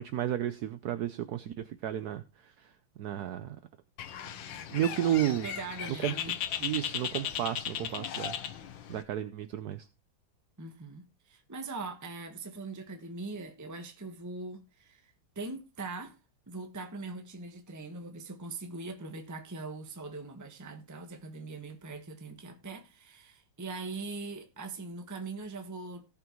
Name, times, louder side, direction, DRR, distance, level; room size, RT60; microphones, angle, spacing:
voice 1, 0.0-2.7 3.0-3.6 4.7-5.5 6.0-6.1 6.6-8.3 8.9-9.9, right 11 dB, 65° right, 1.0 m, -32 dB
Bird, 4.0-9.0, left 9 dB, 70° left, 1.6 m, -37 dB
voice 2, 5.2-6.4 10.6-16.1 16.5-26.1, right 3 dB, 10° right, 1.1 m, -41 dB
18.0 x 6.0 x 3.1 m
omnidirectional pair, 2.2 m